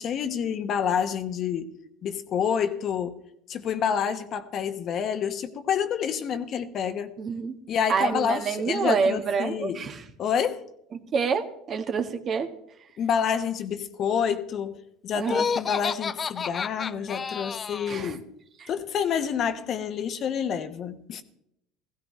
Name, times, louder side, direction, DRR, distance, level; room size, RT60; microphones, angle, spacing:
voice 1, 0.0-1.7 2.0-3.2 3.5-7.1 7.7-9.9 10.2-10.6 13.0-14.8 15.0-18.2 18.7-21.2, left 7 dB, 50° left, 1.1 m, -28 dB
voice 2, 7.2-7.5 7.9-10.0 11.1-12.5 15.1-15.4 17.9-18.1, right 5 dB, 45° right, 1.4 m, -27 dB
Laughter, 15.2-18.1, left 6 dB, 35° left, 0.5 m, -30 dB
16.5 x 15.5 x 3.2 m
hypercardioid pair, 75°, 0 cm